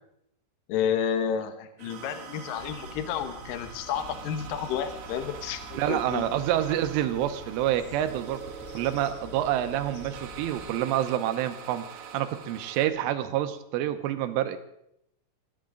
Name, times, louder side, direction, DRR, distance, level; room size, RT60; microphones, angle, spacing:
voice 1, 0.7-6.3, left 8 dB, 85° left, 9 dB, 1.9 m, -31 dB
sound 1, 1.8-12.9, right 7 dB, 65° right, 2.9 m, -44 dB
sound 2, 2.6-10.7, left 3 dB, 70° left, 4.7 m, -47 dB
voice 2, 5.7-8.4 8.7-14.6, right 12 dB, 80° right, 9 dB, 3.4 m, -28 dB
21.0 x 14.5 x 3.9 m, 0.77 s
omnidirectional pair, 5.7 m